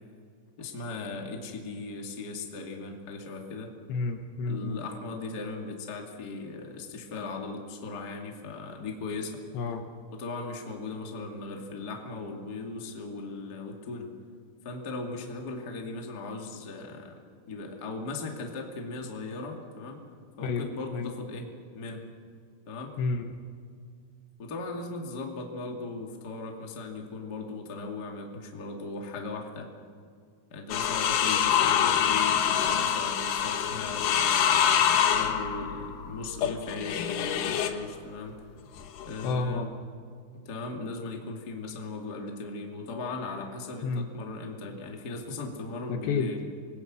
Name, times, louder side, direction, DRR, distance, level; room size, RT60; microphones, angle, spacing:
voice 1, 0.6-3.7 4.5-9.4 10.1-14.1 14.6-17.2 17.5-20.0 20.4-21.5 21.7-22.0 22.7-22.9 24.4-29.7 30.5-38.3 39.0-39.7 40.4-46.4, left 3 dB, 30° left, 1 dB, 1.9 m, -38 dB
voice 2, 3.9-4.8 9.5-9.8 20.4-21.1 23.0-23.3 39.2-39.7 43.8-44.1 45.9-46.3, left 4 dB, 70° left, 5 dB, 3.0 m, -30 dB
sound 1, 30.7-37.8 38.8-39.4, left 9 dB, 90° left, 1.8 m, -25 dB
27.0 x 21.0 x 6.2 m, 2.2 s
omnidirectional pair, 5.6 m